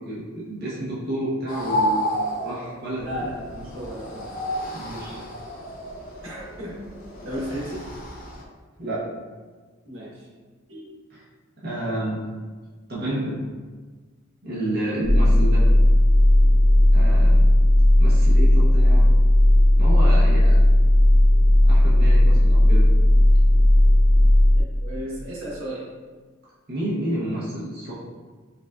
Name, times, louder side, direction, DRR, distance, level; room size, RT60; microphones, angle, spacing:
voice 1, 0.0-3.3 4.7-5.2 8.8-9.1 11.1-11.2 11.6-12.2 12.9-13.4 14.4-15.6 16.9-17.4 18.0-19.0 19.8-20.6 21.6-22.9 26.7-27.9, right 1 dB, 50° right, -8 dB, 0.8 m, -30 dB
sound 1, 1.5-8.4, equal, 45° left, 0.5 m, -31 dB
voice 2, 3.0-4.3 6.2-6.7 7.2-7.8 9.8-10.3 10.7-10.9 24.5-25.8, equal, 85° right, -6 dB, 1.2 m, -34 dB
sound 2, 15.0-24.6, left 1 dB, 90° left, 0.6 m, -15 dB
5.1 x 2.4 x 2.3 m, 1.4 s
head